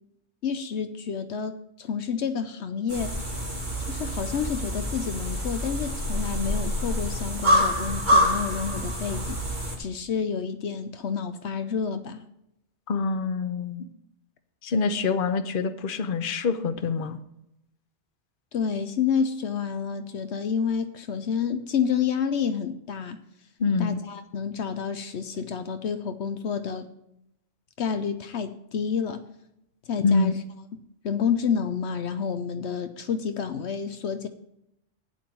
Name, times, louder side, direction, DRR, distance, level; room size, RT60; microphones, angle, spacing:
voice 1, 0.4-3.2 3.9-9.4 9.8-12.2 18.5-23.2 23.8-26.9 27.8-29.2 29.9-30.3 31.0-34.3, left 6 dB, 70° left, 9 dB, 1.0 m, -29 dB
sound 1, 2.9-9.8, equal, 40° right, 2.7 m, -26 dB
voice 2, 12.9-13.9 14.6-17.2 23.6-24.0 30.0-30.3, left 4 dB, 50° left, 9 dB, 0.9 m, -25 dB
11.0 x 9.3 x 4.6 m, 0.81 s
omnidirectional pair, 1.2 m